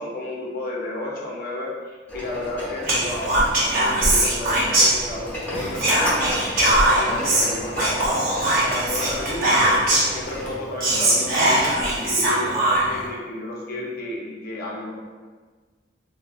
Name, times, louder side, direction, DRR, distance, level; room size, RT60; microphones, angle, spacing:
voice 1, 0.0-8.2 8.6-14.9, left 2 dB, 55° left, -2 dB, 0.5 m, -32 dB
sound 1, 2.1-10.6, equal, 10° left, 0.9 m, -33 dB
Whispering, 2.9-5.4 5.7-10.2 10.5-10.6 10.8-13.1, right 1 dB, 50° right, 0.7 m, -20 dB
3.6 x 2.0 x 2.3 m, 1.4 s
head